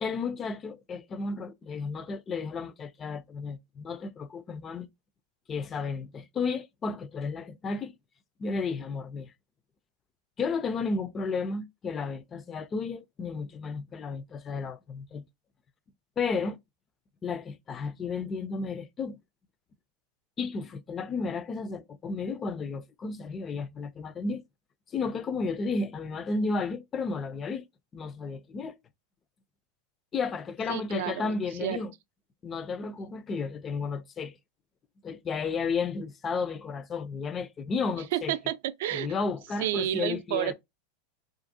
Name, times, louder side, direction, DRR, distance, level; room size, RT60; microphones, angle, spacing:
voice 1, 0.0-4.9 5.5-7.9 8.4-9.3 10.4-15.2 16.2-16.6 17.2-19.2 20.4-24.4 24.9-27.6 27.9-28.8 30.1-31.9 32.4-34.3 35.0-38.3 38.9-40.5, left 4 dB, 25° left, 0.3 m, -33 dB
voice 2, 30.7-31.8 38.1-39.1 39.6-40.5, right 12 dB, 70° right, 0.3 m, -30 dB
2.6 x 2.4 x 2.6 m
supercardioid pair, 135°, 0 cm